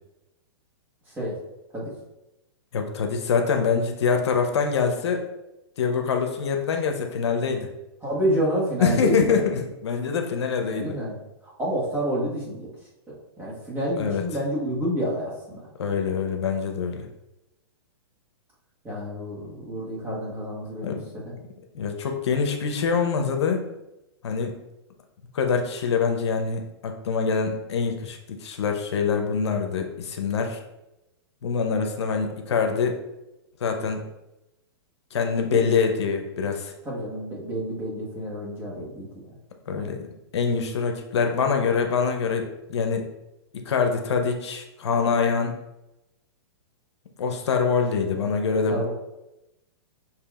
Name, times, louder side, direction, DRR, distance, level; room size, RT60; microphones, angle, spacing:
voice 1, 2.7-5.2 5.8-7.7 8.8-11.0 14.0-14.2 15.8-17.0 20.8-21.0 21.7-23.6 24.2-24.5 25.3-30.6 31.4-33.0 33.6-34.0 35.1-36.7 39.7-40.0 40.3-43.1 43.5-45.6 47.2-48.9, left 5 dB, 80° left, 4 dB, 0.7 m, -25 dB
voice 2, 8.0-9.4 10.7-11.2 11.6-12.7 13.1-15.6 18.8-21.3 35.5-35.7 36.8-39.1 39.7-40.0 48.1-48.3 48.7-48.9, equal, 15° right, -6 dB, 1.4 m, -29 dB
6.6 x 2.9 x 2.4 m, 0.95 s
hypercardioid pair, 145°, 14 cm